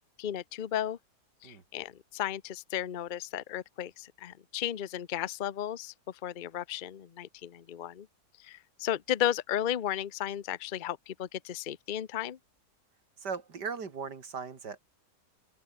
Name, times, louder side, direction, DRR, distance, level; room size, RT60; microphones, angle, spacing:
voice 1, 0.2-1.0 1.4-5.9 6.2-8.1 8.4-12.4, left 10 dB, 45° left, 0.6 m, -34 dB
voice 2, 13.2-14.8, right 5 dB, 75° right, 3.0 m, -38 dB
open air
omnidirectional pair, 1.9 m